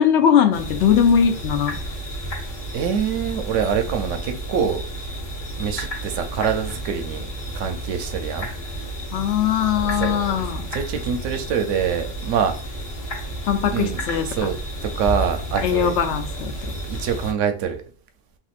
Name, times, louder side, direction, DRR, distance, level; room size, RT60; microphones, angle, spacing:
voice 1, 0.0-1.8 9.1-10.7 13.5-14.2 15.6-16.8, left 8 dB, 70° left, 6 dB, 0.9 m, -20 dB
sound 1, 0.5-17.3, right 1 dB, 35° left, 0.8 m, -31 dB
voice 2, 2.7-4.8 5.6-7.3 7.5-8.5 9.8-10.4 10.7-12.5 13.6-14.6 14.8-16.0 16.9-17.8, right 7 dB, 80° right, 7 dB, 0.9 m, -25 dB
3.5 x 2.5 x 2.4 m, 0.42 s
omnidirectional pair, 1.3 m